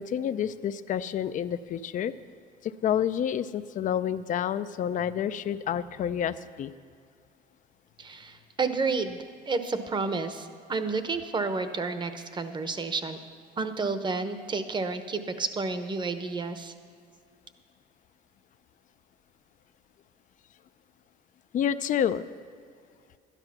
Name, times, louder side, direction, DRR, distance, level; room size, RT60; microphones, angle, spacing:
voice 1, 0.0-2.1 2.8-6.7 21.5-22.2, left 9 dB, 50° left, 13 dB, 0.5 m, -29 dB
voice 2, 8.0-13.2 13.6-16.7, right 4 dB, 25° right, 9 dB, 0.9 m, -31 dB
12.0 x 11.0 x 5.9 m, 2.2 s
cardioid pair, 110°, 17 cm